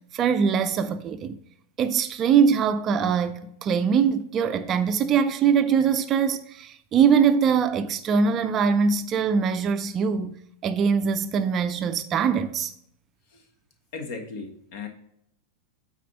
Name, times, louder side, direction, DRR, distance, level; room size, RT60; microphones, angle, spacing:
voice 1, 0.1-1.4 1.8-10.4 10.6-12.7, right 6 dB, 30° right, 0.5 m, -22 dB
voice 2, 13.9-14.9, left 4 dB, 50° left, 1.4 m, -36 dB
9.1 x 4.3 x 5.8 m
figure-of-eight pair, 90°, 0 cm